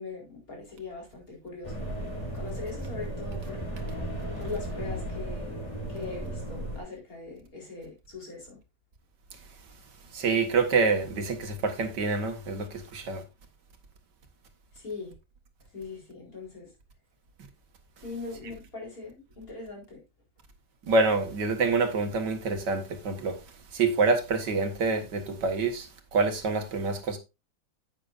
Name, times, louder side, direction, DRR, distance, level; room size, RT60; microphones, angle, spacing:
voice 1, 0.0-1.9 2.3-3.6 4.4-5.6 5.9-8.6 14.7-15.2 15.7-16.7 18.0-20.0, left 4 dB, 55° left, 4.6 m, -40 dB
sound 1, 1.6-6.8, right 1 dB, 20° left, 3.5 m, -35 dB
voice 2, 10.1-13.2 20.8-23.4 23.7-27.2, right 4 dB, 90° right, 2.2 m, -26 dB
10.0 x 8.8 x 2.5 m
omnidirectional pair, 1.8 m